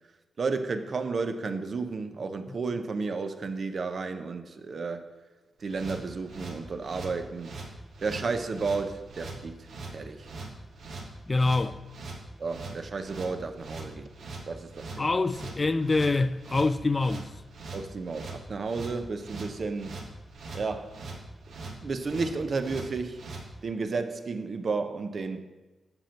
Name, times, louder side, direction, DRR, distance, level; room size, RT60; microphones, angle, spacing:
voice 1, 0.4-5.0 5.6-7.6 8.0-10.3 12.4-14.1 14.5-15.1 17.7-20.0 20.5-21.0 21.8-23.2 23.6-25.4, right 4 dB, 50° right, 0.7 m, -32 dB
sound 1, 5.6-23.5, right 3 dB, 75° right, 1.4 m, -42 dB
voice 2, 11.3-11.8 15.0-17.3, left 3 dB, 30° left, 0.3 m, -25 dB
7.8 x 5.9 x 5.7 m
wide cardioid pair, 110°, 0 cm